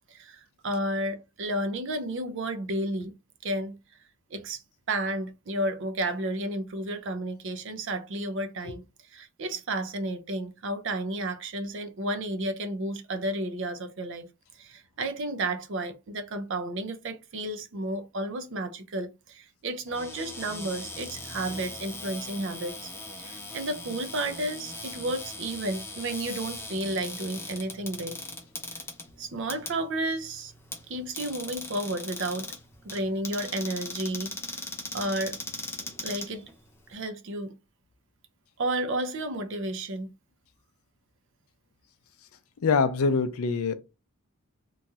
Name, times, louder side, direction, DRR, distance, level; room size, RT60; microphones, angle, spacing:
voice 1, 0.1-3.1 3.4-3.8 4.3-4.6 4.9-8.8 9.1-14.3 14.6-22.9 23.2-28.2 29.2-30.5 30.9-32.5 32.8-34.4 34.9-35.4 36.0-36.5 36.9-37.6 38.6-40.1, right 1 dB, 55° right, 0.5 m, -32 dB
Cupboard open or close, 19.9-36.9, left 2 dB, 10° left, 0.5 m, -40 dB
voice 2, 42.6-43.7, left 4 dB, 75° left, 0.4 m, -24 dB
3.0 x 2.3 x 2.7 m
head